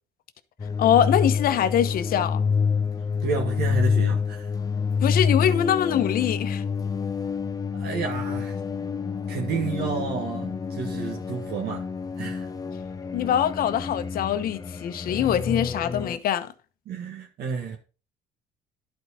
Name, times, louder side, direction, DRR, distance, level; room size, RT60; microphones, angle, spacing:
sound 1, 0.6-16.2, left 6 dB, 20° left, 0.6 m, -28 dB
voice 1, 0.8-2.4 5.0-6.6 13.1-16.5, left 10 dB, 60° left, 0.9 m, -23 dB
voice 2, 3.2-4.5 7.7-8.6 9.3-11.8 12.2-12.5 16.9-17.8, right 5 dB, 65° right, 1.6 m, -31 dB
11.0 x 4.7 x 4.1 m
cardioid pair, 110°, 17 cm